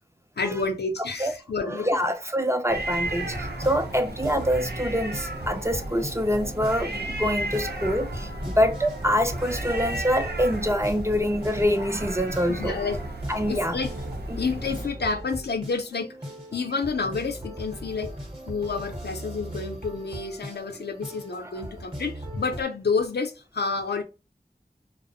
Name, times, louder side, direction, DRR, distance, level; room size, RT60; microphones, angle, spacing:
voice 1, 0.4-2.0 12.5-13.0 13.5-13.9 14.4-16.1 16.5-18.1 18.4-24.0, left 4 dB, 90° left, 0.5 m, -29 dB
voice 2, 1.6-12.8 13.3-13.8 14.3-14.4, equal, 15° right, 0.4 m, -25 dB
sound 1, 2.7-14.9, right 1 dB, 85° right, 0.6 m, -34 dB
sound 2, 3.0-22.6, right 1 dB, 35° right, 0.8 m, -39 dB
2.4 x 2.0 x 2.6 m
wide cardioid pair, 55°, 16 cm